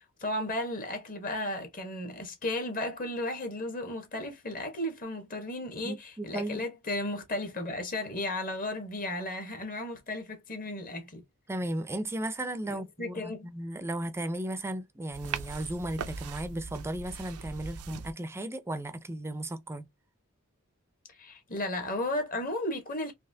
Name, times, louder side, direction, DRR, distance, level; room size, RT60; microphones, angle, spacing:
voice 1, 0.2-11.2 12.7-13.5 21.2-23.1, left 1 dB, 40° left, 1.2 m, -34 dB
voice 2, 5.8-6.6 11.5-19.8, right 1 dB, 10° right, 0.5 m, -35 dB
sound 1, 15.1-18.1, right 6 dB, 80° right, 0.5 m, -40 dB
4.1 x 2.9 x 2.7 m
head